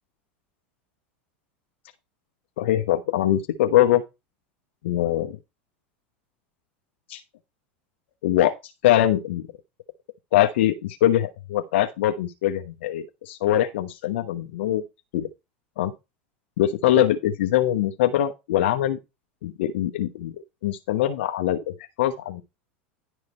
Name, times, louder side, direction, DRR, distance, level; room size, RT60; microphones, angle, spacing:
voice 1, 2.6-4.0 4.8-5.4 7.1-7.2 8.2-8.5 8.8-9.5 10.3-14.8 15.1-15.3 15.8-15.9 16.6-19.0 19.4-20.3 20.6-22.4, left 12 dB, 75° left, 1.0 m, -22 dB
11.0 x 4.9 x 4.3 m
hypercardioid pair, 105°, 6 cm